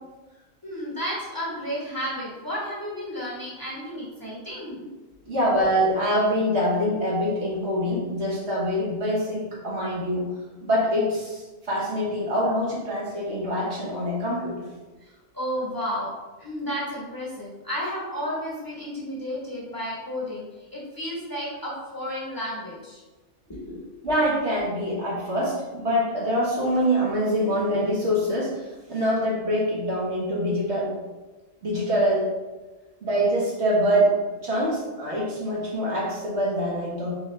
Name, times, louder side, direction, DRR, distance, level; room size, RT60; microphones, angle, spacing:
voice 1, 0.6-4.9 5.2-5.3 15.0-16.1 16.4-23.0 23.6-23.8, equal, 15° left, -7 dB, 1.2 m, -32 dB
voice 2, 5.3-10.3 10.6-14.7 24.0-30.9 31.6-32.3 33.0-34.1 34.4-37.1, equal, 55° right, -5 dB, 1.4 m, -24 dB
4.1 x 3.7 x 3.2 m, 1.2 s
omnidirectional pair, 1.4 m